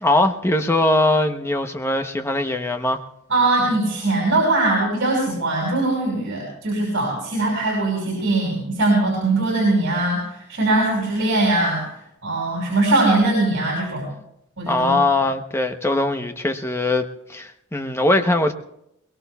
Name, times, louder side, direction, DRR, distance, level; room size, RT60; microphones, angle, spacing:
voice 1, 0.0-3.0 14.7-18.5, left 2 dB, 10° left, 0.8 m, -21 dB
voice 2, 3.3-11.9 12.2-14.1 14.6-15.0, right 2 dB, 60° right, 5.7 m, -21 dB
22.5 x 21.5 x 2.3 m
head